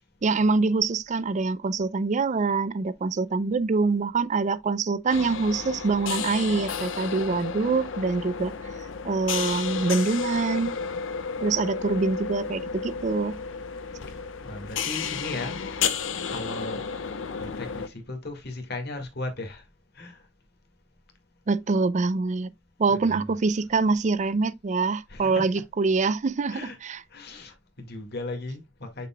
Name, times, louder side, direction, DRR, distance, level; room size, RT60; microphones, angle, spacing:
voice 1, 0.2-8.5 9.0-10.8 11.4-13.3 21.5-22.5 22.8-27.0, right 4 dB, 40° right, 0.4 m, -25 dB
sound 1, 5.1-17.9, left 6 dB, 85° left, 0.8 m, -32 dB
voice 2, 14.4-15.8 16.3-16.8 17.4-19.6 20.0-20.2 22.9-23.3 25.1-25.5 26.5-26.8 27.1-29.1, left 2 dB, 60° left, 2.0 m, -36 dB
6.7 x 6.7 x 2.3 m
head